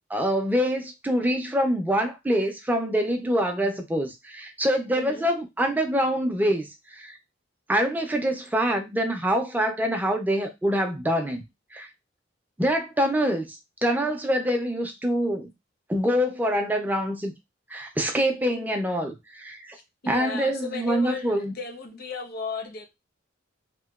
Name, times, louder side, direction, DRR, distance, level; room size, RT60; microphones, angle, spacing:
voice 1, 0.1-7.2 7.7-11.4 11.7-11.9 12.6-13.6 13.8-15.5 15.9-17.3 17.7-19.8 20.1-21.5, equal, 10° right, 0.4 m, -25 dB
voice 2, 4.9-5.3 19.7-22.9, left 4 dB, 55° left, 0.6 m, -35 dB
2.9 x 2.1 x 2.3 m
head